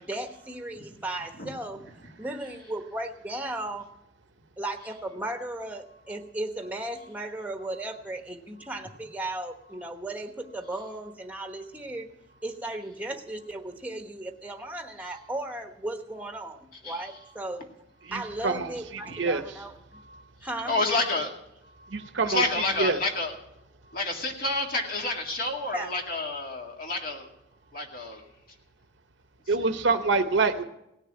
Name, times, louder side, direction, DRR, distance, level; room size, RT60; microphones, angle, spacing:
voice 1, 0.0-1.8 2.2-3.9 4.6-12.1 12.4-16.6 16.8-17.7 18.1-19.7 20.4-20.8 25.7-25.9, right 1 dB, 10° right, 5 dB, 1.1 m, -35 dB
voice 2, 18.0-18.7 19.1-19.4 21.9-22.4 22.8-23.0 29.5-30.6, right 3 dB, 75° right, 7 dB, 0.9 m, -25 dB
voice 3, 20.7-21.3 21.6-23.3 23.8-27.3 27.7-28.2 29.5-29.7, left 2 dB, 50° left, 1 dB, 2.2 m, -30 dB
18.0 x 6.6 x 9.8 m, 0.85 s
head